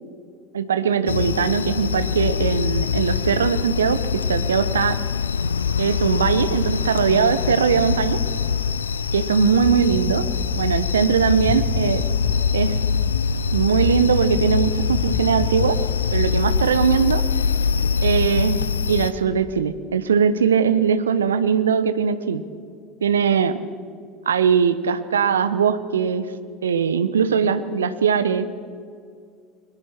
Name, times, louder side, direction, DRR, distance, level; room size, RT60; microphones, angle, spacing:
voice 1, 0.5-5.0 5.8-8.2 9.1-10.2 10.5-12.0 12.5-12.8 13.5-15.8 16.1-17.2 18.0-18.6 18.9-22.4 23.0-23.6 24.3-26.2 26.6-28.5, right 6 dB, 75° right, 13 dB, 1.0 m, -20 dB
sound 1, 1.1-19.1, left 6 dB, 80° left, 0.5 m, -23 dB
sound 2, 9.6-10.0 10.4-10.8 11.2-12.4 12.7-13.2 13.5-13.9 14.3-14.7 15.1-15.5, left 4 dB, 35° left, 3.1 m, -29 dB
29.5 x 21.5 x 4.5 m, 2.2 s
figure-of-eight pair, 70°, 0 cm